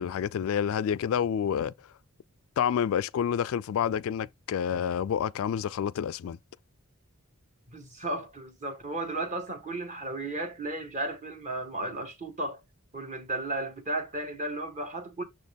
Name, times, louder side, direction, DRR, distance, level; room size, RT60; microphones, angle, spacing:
voice 1, 0.0-1.7 2.6-6.4, left 8 dB, 65° left, 0.3 m, -28 dB
voice 2, 7.7-12.6 12.9-15.2, right 2 dB, 35° right, 1.5 m, -34 dB
6.6 x 4.1 x 3.4 m
head